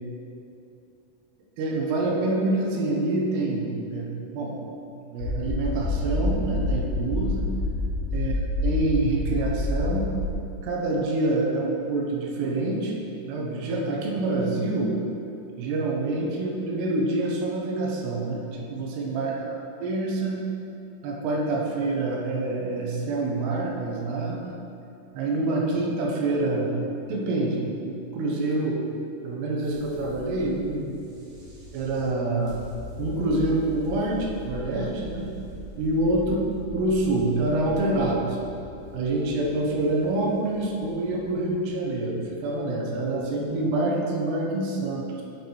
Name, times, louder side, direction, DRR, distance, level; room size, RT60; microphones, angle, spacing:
voice 1, 1.6-4.5 5.1-7.5 8.1-8.3 8.6-10.1 10.6-13.0 13.3-14.9 15.6-19.4 19.8-20.5 21.0-24.6 25.1-28.8 29.2-31.0 31.7-32.6 33.0-35.3 35.8-36.4 36.7-38.4 38.9-45.2, right 2 dB, 80° right, -1 dB, 3.0 m, -26 dB
sound 1, 5.2-10.3, left 2 dB, 85° left, 3.0 m, -27 dB
sound 2, 29.6-43.8, left 2 dB, 55° right, 1.9 m, -42 dB
8.5 x 5.3 x 4.6 m, 2.7 s
omnidirectional pair, 4.9 m